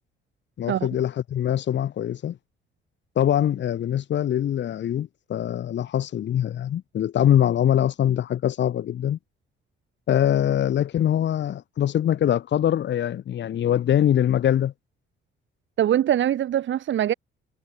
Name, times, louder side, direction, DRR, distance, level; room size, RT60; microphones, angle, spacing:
voice 1, 0.6-2.4 3.2-9.2 10.1-14.7, left 10 dB, 65° left, 2.2 m, -23 dB
voice 2, 15.8-17.1, right 11 dB, 70° right, 3.7 m, -22 dB
cardioid pair, 90°, 20 cm